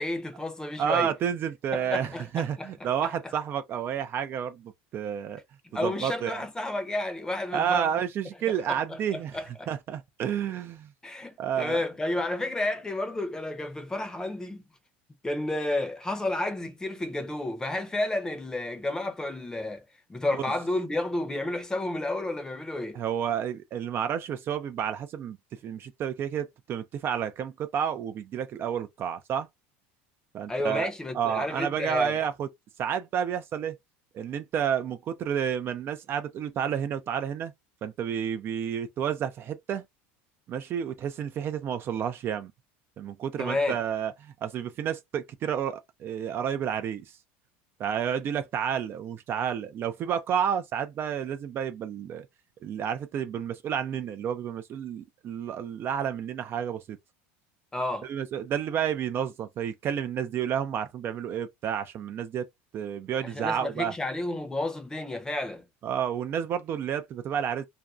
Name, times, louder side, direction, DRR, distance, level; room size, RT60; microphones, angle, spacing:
voice 1, 0.0-1.1 1.7-3.3 5.6-7.9 8.7-9.7 11.0-14.6 15.2-19.8 20.1-23.0 30.5-32.2 43.4-43.8 57.7-58.1 63.2-65.7, left 2 dB, 10° left, 0.6 m, -31 dB
voice 2, 0.8-5.4 5.8-6.4 7.5-9.4 9.7-10.9 11.4-11.8 20.3-20.5 22.9-25.4 25.6-29.5 30.3-30.9 31.1-32.5 32.8-33.8 34.1-37.5 37.8-39.8 40.5-42.5 43.0-47.2 47.8-52.3 52.6-57.0 58.0-62.5 62.7-63.9 65.8-67.7, right 8 dB, 40° right, 0.3 m, -30 dB
2.5 x 2.2 x 2.3 m
supercardioid pair, 120°, 6 cm